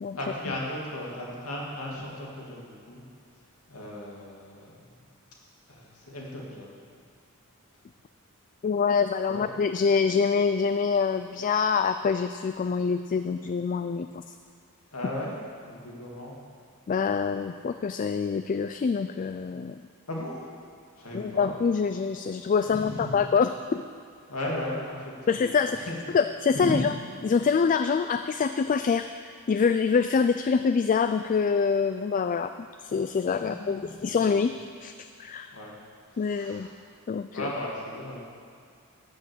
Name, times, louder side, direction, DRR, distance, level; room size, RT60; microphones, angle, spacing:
voice 1, 0.1-3.0 3.7-5.1 5.7-6.8 9.3-9.4 14.9-16.4 20.1-20.5 20.9-21.5 22.6-23.2 24.3-26.0 26.5-26.8 33.4-34.5 35.5-35.8 36.1-36.7 37.3-38.2, left 1 dB, 75° left, -3 dB, 2.6 m, -36 dB
voice 2, 8.6-14.4 16.9-19.8 21.1-23.8 25.3-25.8 26.1-26.9 27.2-34.5 34.8-35.5 36.2-36.7 37.1-37.5, left 5 dB, 35° left, 9 dB, 0.3 m, -25 dB
13.0 x 6.5 x 8.1 m, 2.3 s
head